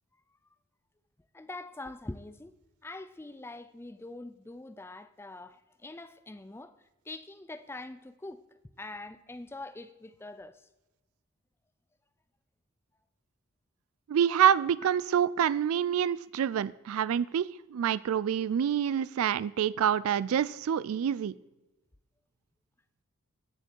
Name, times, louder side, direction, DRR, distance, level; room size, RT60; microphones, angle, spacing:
voice 1, 1.3-2.6 2.8-6.7 7.1-8.4 8.8-10.7, left 2 dB, 10° left, 0.3 m, -44 dB
voice 2, 14.1-21.3, right 9 dB, 70° right, 0.3 m, -27 dB
19.5 x 7.0 x 4.5 m
head